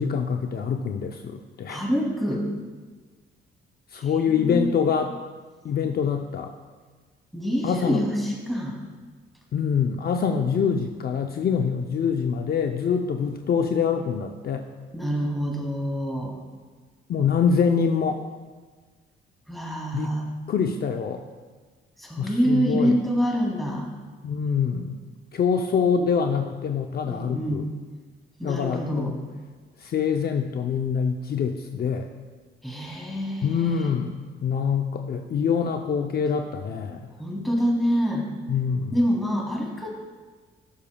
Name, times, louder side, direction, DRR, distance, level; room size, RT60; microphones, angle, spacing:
voice 1, 0.0-1.8 3.9-5.1 5.6-6.6 7.6-8.0 9.5-14.7 17.1-18.2 19.9-20.2 20.5-21.2 22.2-22.9 24.2-25.0 25.3-27.7 28.4-29.2 29.8-32.1 33.4-37.1 38.5-38.9, left 6 dB, 50° left, 4 dB, 0.6 m, -25 dB
voice 2, 1.7-2.4 4.0-4.7 7.3-8.8 14.9-16.4 19.5-20.3 22.0-23.9 27.1-27.7 28.4-29.1 32.6-33.9 37.2-38.3 38.9-39.9, equal, ahead, -3 dB, 2.7 m, -26 dB
17.5 x 7.0 x 2.3 m, 1.4 s
cardioid pair, 90°, 20 cm